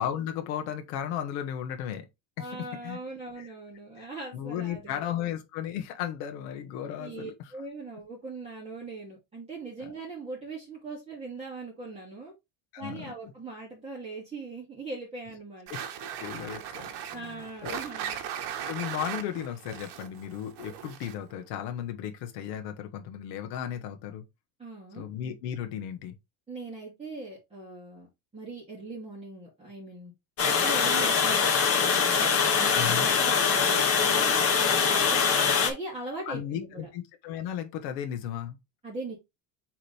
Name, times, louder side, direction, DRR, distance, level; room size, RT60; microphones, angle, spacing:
voice 1, 0.0-2.1 2.4-3.0 3.4-3.5 4.0-7.5 9.8-9.9 12.7-13.1 15.7-15.8 16.2-17.8 18.6-24.2 24.9-26.1 32.7-33.1 36.3-38.6, left 10 dB, 85° left, 1.6 m, -35 dB
voice 2, 2.4-5.0 7.0-12.3 12.8-15.7 17.1-18.2 24.6-25.1 26.5-28.1 28.3-30.1 30.4-35.2 35.6-36.9 38.8-39.2, right 3 dB, 15° right, 2.9 m, -40 dB
sound 1, 15.7-21.3, right 9 dB, 55° right, 1.5 m, -38 dB
Water, 30.4-35.7, left 6 dB, 30° left, 1.5 m, -23 dB
7.5 x 3.9 x 3.4 m
cardioid pair, 140°, 47 cm